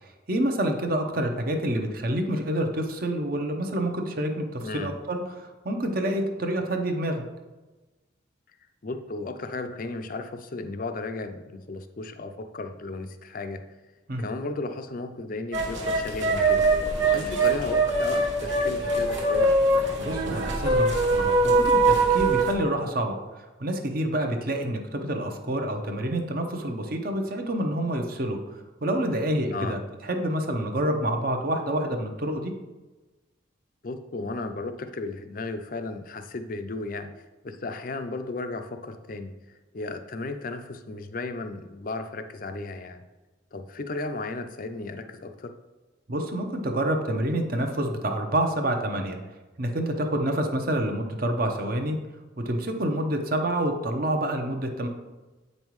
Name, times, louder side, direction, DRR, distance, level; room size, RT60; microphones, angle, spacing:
voice 1, 0.3-7.2 14.1-14.3 20.0-23.2 23.6-32.5 46.1-49.2 49.6-52.0 52.4-54.9, right 1 dB, 50° right, 4 dB, 0.8 m, -28 dB
voice 2, 8.8-13.6 14.2-19.5 29.5-29.8 33.8-37.1 37.4-43.0 43.5-45.5, left 3 dB, 45° left, 7 dB, 0.5 m, -35 dB
sound 1, 15.5-22.5, right 2 dB, 75° right, 1.3 m, -23 dB
8.1 x 5.4 x 3.1 m, 1.2 s
head